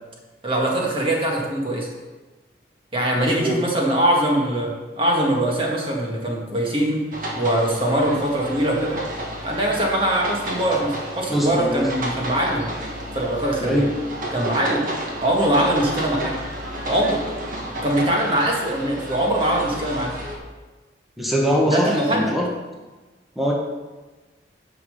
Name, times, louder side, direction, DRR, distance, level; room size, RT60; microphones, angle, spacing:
voice 1, 0.4-1.9 2.9-7.0 7.4-9.0 9.4-12.7 13.1-13.8 14.3-14.9 15.2-16.4 16.8-17.2 17.8-20.2 21.7-22.3, right 1 dB, 30° right, -1 dB, 1.7 m, -22 dB
voice 2, 3.1-3.6 11.3-11.9 13.6-13.9 21.2-22.5 23.4-23.5, equal, ahead, -2 dB, 1.2 m, -22 dB
sound 1, 7.1-20.4, right 1 dB, 45° right, 1.6 m, -32 dB
9.7 x 5.9 x 5.5 m, 1.2 s
head